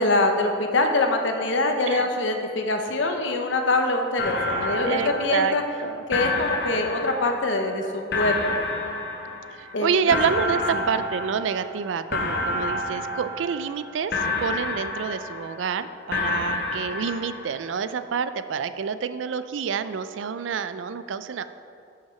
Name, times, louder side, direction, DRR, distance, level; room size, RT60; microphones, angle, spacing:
voice 1, 0.0-5.6 6.1-8.6 9.7-9.9 10.7-10.8, left 2 dB, 85° left, 4 dB, 0.9 m, -24 dB
sound 1, 4.2-5.8 6.1-7.8 8.1-9.7 10.1-11.8 12.1-13.8 14.1-15.7 16.1-17.7, left 2 dB, 60° left, 1.3 m, -29 dB
voice 2, 4.3-6.0 9.5-21.4, right 6 dB, 90° right, 12 dB, 0.4 m, -28 dB
7.8 x 5.8 x 5.7 m, 2.4 s
head